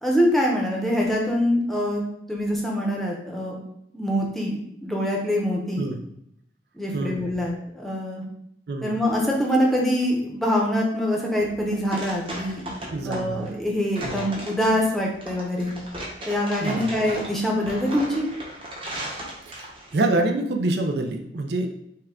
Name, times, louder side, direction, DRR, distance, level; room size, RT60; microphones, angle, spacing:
voice 1, 0.0-2.0 2.3-3.5 3.9-5.9 6.7-8.2 8.8-12.6 13.0-15.7 16.3-18.2, equal, ahead, -2 dB, 0.7 m, -24 dB
voice 2, 6.9-7.3 8.7-9.0 12.9-13.5 14.0-14.2 16.6-16.9 19.4-21.7, right 2 dB, 65° right, 4 dB, 0.5 m, -26 dB
sound 1, 11.4-20.0, right 1 dB, 30° right, 1.0 m, -36 dB
5.5 x 2.3 x 3.6 m, 0.75 s
head